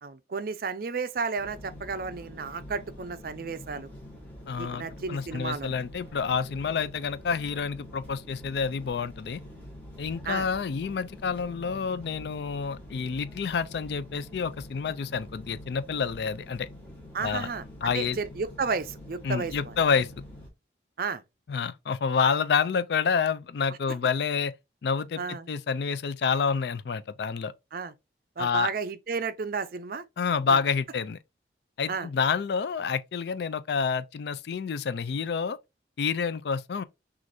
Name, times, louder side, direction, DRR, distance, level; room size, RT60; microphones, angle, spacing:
voice 1, 0.0-3.9 4.6-5.7 10.2-10.5 17.1-19.7 21.0-21.2 25.2-25.5 27.7-27.9 28.4-30.0 30.3-30.6 31.9-32.1, right 5 dB, 50° right, 0.4 m, -33 dB
sound 1, 1.4-20.5, left 1 dB, 10° left, 1.3 m, -46 dB
voice 2, 4.5-4.8 5.1-9.4 10.0-16.7 17.2-17.5 17.8-18.2 19.2-20.1 21.5-24.5 24.8-27.5 28.4-28.7 30.2-31.2 31.8-35.6 36.0-36.8, left 6 dB, 60° left, 0.4 m, -28 dB
6.2 x 2.5 x 2.6 m
head